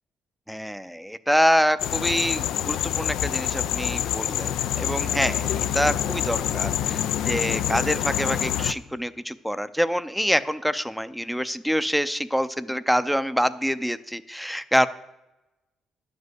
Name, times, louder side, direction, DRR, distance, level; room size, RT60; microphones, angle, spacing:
voice 1, 0.5-14.9, equal, ahead, 13 dB, 0.5 m, -26 dB
sound 1, 1.8-8.7, left 10 dB, 80° left, 0.4 m, -26 dB
9.9 x 5.4 x 7.9 m, 0.97 s
cardioid pair, 90°, 0 cm